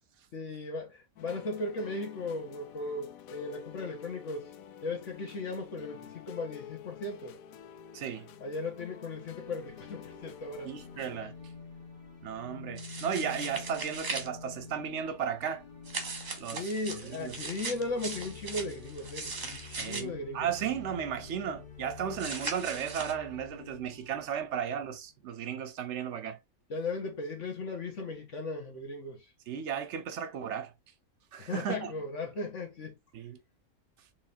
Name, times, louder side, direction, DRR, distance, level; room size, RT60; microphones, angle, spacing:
voice 1, 0.3-4.5 4.8-7.4 8.4-10.7 16.5-20.5 26.7-29.3 31.4-33.0, left 2 dB, 60° left, 1.7 m, -37 dB
sound 1, 1.2-11.2, left 8 dB, 80° left, 1.0 m, -49 dB
voice 2, 7.9-8.3 10.6-11.3 12.2-15.6 16.4-16.7 17.0-17.3 19.8-26.4 29.5-30.7 31.3-31.9 33.1-33.4, right 8 dB, 60° right, 0.9 m, -35 dB
sound 2, 9.1-25.1, left 5 dB, 40° left, 1.3 m, -49 dB
sound 3, 12.8-14.3 15.9-20.0 22.2-23.1, right 3 dB, 35° right, 0.9 m, -39 dB
4.5 x 3.4 x 2.7 m
omnidirectional pair, 1.5 m